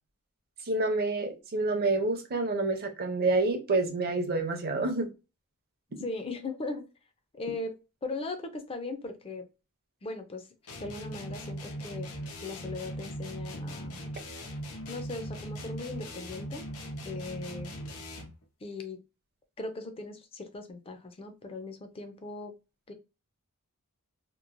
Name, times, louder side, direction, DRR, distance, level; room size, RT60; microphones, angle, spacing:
voice 1, 0.6-5.1, right 3 dB, 45° right, 0.6 m, -28 dB
voice 2, 6.0-6.9 7.3-7.7 8.0-9.4 10.0-10.5 10.8-12.1 12.4-14.0 14.9-16.6 17.0-17.7 18.6-19.0 19.6-22.5 22.9-23.0, left 3 dB, 25° left, 0.4 m, -38 dB
sound 1, 10.7-18.4, equal, 85° left, 0.7 m, -39 dB
3.0 x 2.0 x 2.5 m
head